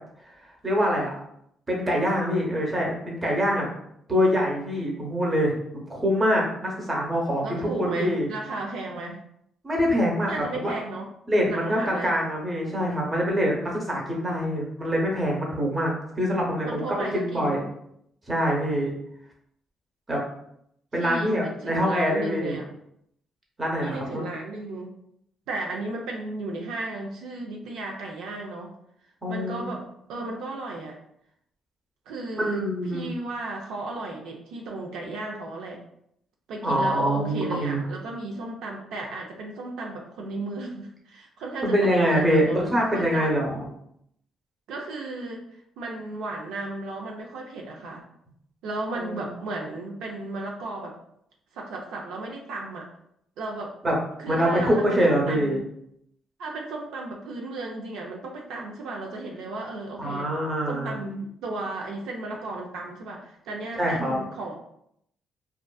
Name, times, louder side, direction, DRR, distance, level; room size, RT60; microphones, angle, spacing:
voice 1, 0.6-1.1 1.7-3.7 4.1-8.3 9.6-10.3 10.6-10.7 11.3-16.9 17.1-17.6 18.3-18.9 20.1-20.2 20.9-22.6 23.6-24.2 29.2-29.6 30.1-30.3 32.4-33.1 36.6-37.8 41.6-43.7 49.0-49.1 53.8-53.9 54.3-55.6 60.0-61.0 63.8-64.2, equal, 25° right, -2 dB, 0.8 m, -24 dB
voice 2, 7.4-9.2 10.3-11.1 11.5-12.2 16.7-17.7 21.0-22.6 23.8-24.9 25.5-28.7 29.3-31.0 32.1-35.8 36.5-43.3 44.7-48.0 48.6-51.0 51.5-52.9 53.4-53.8 54.2-55.6 56.4-60.3 60.7-64.6, right 2 dB, 90° right, 0 dB, 0.3 m, -34 dB
2.4 x 2.4 x 2.2 m, 0.74 s
cardioid pair, 90°, 0 cm